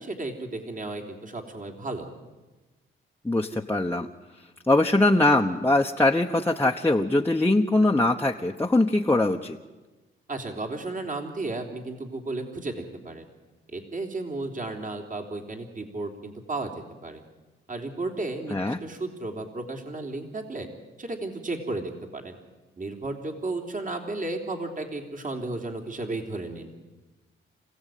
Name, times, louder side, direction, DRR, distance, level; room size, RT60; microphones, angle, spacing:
voice 1, 0.0-2.1 10.3-13.3 13.7-16.7 17.0-17.2 17.7-20.7 21.0-22.4 22.8-26.7, right 2 dB, 40° right, 4 dB, 3.5 m, -33 dB
voice 2, 3.2-4.1 4.7-9.6 18.5-18.8, left 2 dB, 10° left, 0 dB, 1.1 m, -22 dB
27.5 x 16.5 x 9.3 m, 1.2 s
cardioid pair, 95°, 21 cm